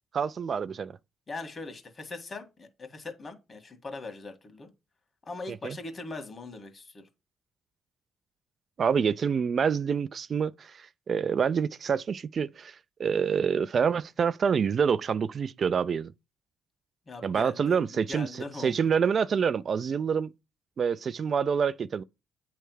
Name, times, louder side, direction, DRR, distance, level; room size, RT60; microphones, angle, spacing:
voice 1, 0.1-0.9 5.6-5.8 8.8-12.7 13.0-16.1 17.2-20.3 20.8-22.0, right 6 dB, 50° right, 0.4 m, -27 dB
voice 2, 1.3-4.7 5.2-7.1 17.1-18.9, left 3 dB, 35° left, 1.7 m, -41 dB
8.8 x 3.4 x 4.7 m
cardioid pair, 90°, 0 cm